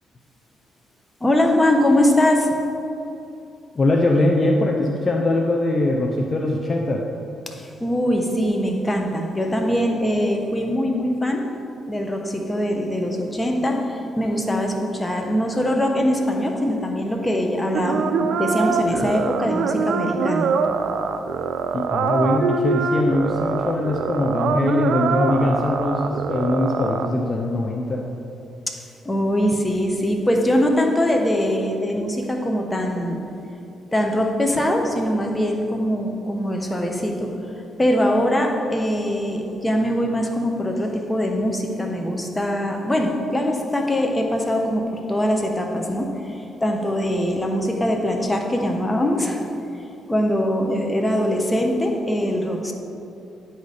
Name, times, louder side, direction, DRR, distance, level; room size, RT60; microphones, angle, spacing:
voice 1, 1.2-2.5 7.5-11.4 11.9-20.5 29.0-33.2 33.9-37.3 37.8-49.4 50.1-52.7, left 1 dB, 15° left, 2 dB, 0.9 m, -22 dB
voice 2, 3.7-7.0 21.7-28.0, left 2 dB, 35° left, 1 dB, 0.6 m, -21 dB
sound 1, 17.7-27.1, right 5 dB, 70° right, 0.4 m, -24 dB
9.2 x 4.2 x 4.9 m, 2.8 s
cardioid pair, 90°, 0 cm